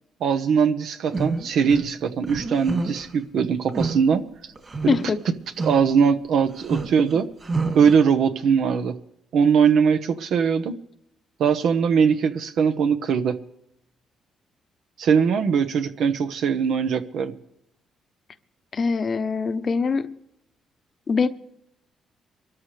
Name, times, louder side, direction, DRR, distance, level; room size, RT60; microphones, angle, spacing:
voice 1, 0.2-4.2 4.8-5.0 5.6-7.3 7.7-9.0 9.3-10.8 11.4-13.4 15.0-17.4, right 6 dB, 70° right, 1.0 m, -21 dB
sound 1, 1.1-1.8 2.2-3.1 3.7-4.0 4.6-5.2 5.6-5.8 6.5-8.0, right 3 dB, 35° right, 2.7 m, -28 dB
voice 2, 4.9-5.2 18.7-20.1 21.1-21.3, left 5 dB, 45° left, 0.8 m, -23 dB
24.0 x 13.5 x 3.3 m
cardioid pair, 90°, 0 cm